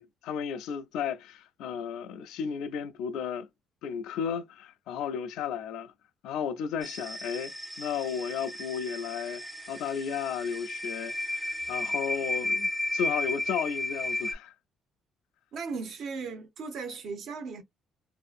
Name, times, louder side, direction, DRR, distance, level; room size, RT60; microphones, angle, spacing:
voice 1, 0.0-3.5 3.8-5.9 6.2-7.5 7.8-14.5, left 7 dB, 80° left, 0.3 m, -34 dB
sound 1, 6.8-14.3, left 2 dB, ahead, 0.4 m, -34 dB
voice 2, 15.5-17.6, right 4 dB, 60° right, 0.6 m, -37 dB
2.6 x 2.4 x 2.4 m
cardioid pair, 140°, 0 cm